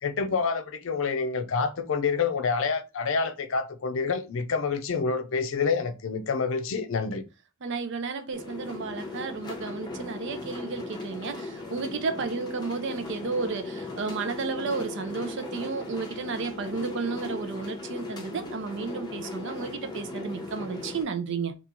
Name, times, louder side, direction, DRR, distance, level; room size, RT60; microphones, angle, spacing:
voice 1, 0.0-7.2, left 5 dB, 60° left, 0.5 m, -27 dB
voice 2, 7.6-21.5, right 4 dB, 55° right, 0.5 m, -32 dB
sound 1, 8.3-21.0, left 2 dB, 20° left, 0.7 m, -38 dB
2.9 x 2.4 x 3.6 m
head